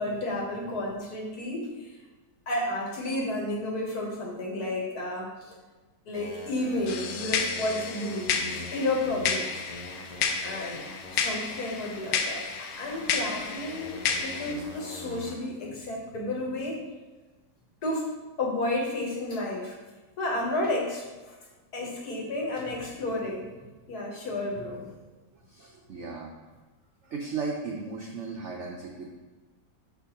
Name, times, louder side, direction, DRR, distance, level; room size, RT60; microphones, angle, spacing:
voice 1, 0.0-2.0 2.5-5.5 6.0-9.6 10.4-16.8 17.8-18.1 18.4-19.8 20.2-21.4 21.7-23.5 23.9-24.9, left 1 dB, 60° left, -1 dB, 1.5 m, -32 dB
sound 1, 6.1-15.3, left 1 dB, 45° left, 0.5 m, -43 dB
sound 2, 6.9-14.5, left 6 dB, 80° left, 1.2 m, -31 dB
voice 2, 25.3-26.3 27.0-29.2, right 4 dB, 75° right, 0 dB, 0.6 m, -36 dB
5.9 x 5.8 x 2.9 m, 1.2 s
omnidirectional pair, 1.9 m